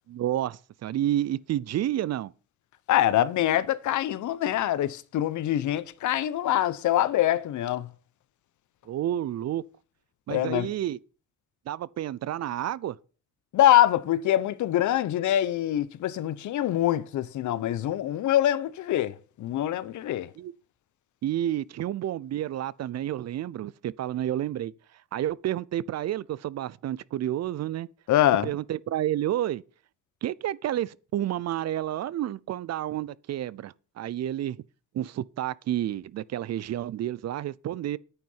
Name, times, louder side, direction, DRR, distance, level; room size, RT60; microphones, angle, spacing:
voice 1, 0.1-2.3 8.9-9.6 10.3-11.0 11.7-13.0 20.4-20.6 21.2-24.7 25.1-27.9 28.4-29.6 30.2-34.6 34.9-38.0, right 12 dB, 60° right, 0.6 m, -30 dB
voice 2, 2.9-7.9 10.3-10.7 13.5-20.3 28.1-28.5, left 12 dB, 75° left, 0.9 m, -24 dB
9.3 x 9.3 x 5.6 m
cardioid pair, 90°, 30 cm